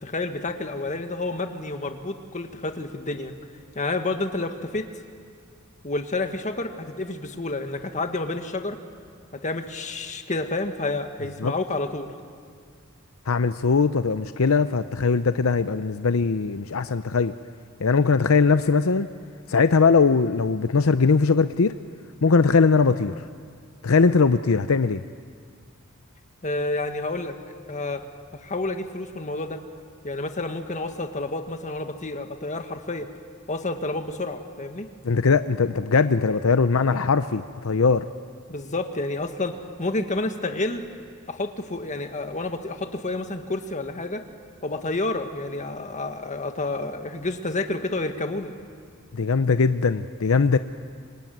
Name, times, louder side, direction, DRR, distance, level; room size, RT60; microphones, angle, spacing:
voice 1, 0.0-3.3 3.8-4.9 5.8-8.8 9.3-12.1 26.4-27.4 27.7-28.1 28.3-29.6 30.0-33.1 33.5-34.9 38.5-40.8 41.3-44.2 44.6-48.5, left 2 dB, 35° left, 6 dB, 1.7 m, -29 dB
voice 2, 13.3-17.3 17.8-19.1 19.5-21.7 22.2-23.3 23.8-25.0 35.0-38.1 49.1-50.6, left 4 dB, 75° left, 11 dB, 0.7 m, -20 dB
27.0 x 23.5 x 9.3 m, 2.1 s
head